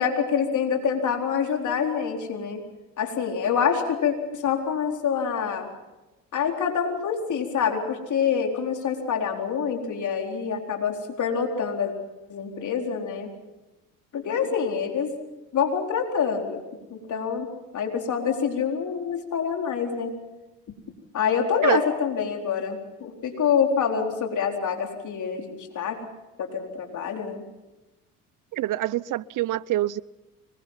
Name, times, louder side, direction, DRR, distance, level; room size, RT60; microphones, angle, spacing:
voice 1, 0.0-2.6 3.0-5.7 6.3-11.9 12.3-13.3 14.1-15.1 15.5-16.6 16.9-20.1 21.1-26.0 26.4-27.4, left 7 dB, 55° left, 2 dB, 4.3 m, -26 dB
voice 2, 28.5-30.0, right 14 dB, 60° right, 22 dB, 0.7 m, -25 dB
25.0 x 21.5 x 5.7 m, 1.1 s
supercardioid pair, 80°, 36 cm